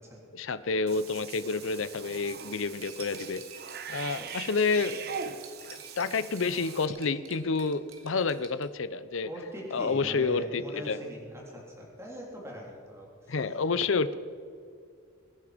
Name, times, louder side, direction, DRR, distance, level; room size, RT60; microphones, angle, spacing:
voice 1, 0.3-3.4 3.9-5.2 6.0-9.3 9.7-11.0 13.3-14.1, left 4 dB, 65° left, 14 dB, 0.6 m, -29 dB
Cat / Bathtub (filling or washing), 0.9-6.9, right 7 dB, 50° right, 0.9 m, -42 dB
Cutlery silverware, 2.4-8.7, right 6 dB, 80° right, 2.1 m, -51 dB
voice 2, 9.2-13.5, equal, 15° right, -2 dB, 3.4 m, -42 dB
23.0 x 9.8 x 5.1 m, 2.3 s
head